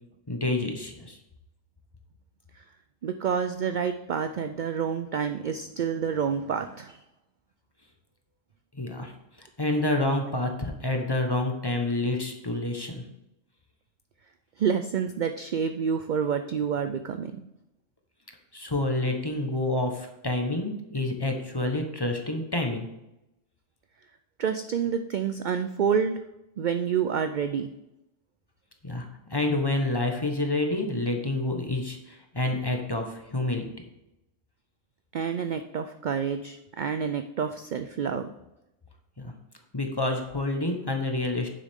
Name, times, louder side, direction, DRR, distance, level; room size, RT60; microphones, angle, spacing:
voice 1, 0.3-1.2 8.7-9.1 9.4-13.0 18.5-22.9 28.8-33.7 39.2-39.3 39.7-41.5, left 2 dB, 20° left, 3 dB, 1.1 m, -28 dB
voice 2, 3.0-7.0 14.6-17.5 24.4-26.2 26.6-27.7 35.1-38.3, right 7 dB, 65° right, 8 dB, 0.4 m, -28 dB
9.5 x 7.3 x 3.6 m, 0.91 s
omnidirectional pair, 1.3 m